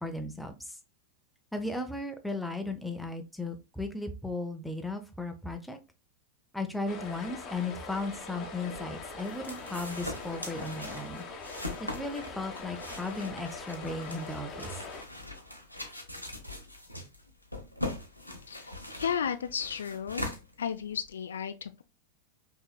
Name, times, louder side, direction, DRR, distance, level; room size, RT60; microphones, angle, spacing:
voice 1, 0.0-0.5 1.5-5.8 6.5-11.2 11.9-14.7, left 2 dB, ahead, 0.7 m, -36 dB
sound 1, 6.9-15.0, left 3 dB, 35° left, 1.1 m, -42 dB
sound 2, 8.6-21.1, left 1 dB, 90° right, 0.7 m, -41 dB
voice 2, 18.5-20.2 20.6-21.8, left 8 dB, 65° left, 0.3 m, -34 dB
5.4 x 2.9 x 2.2 m
figure-of-eight pair, 90°, 0 cm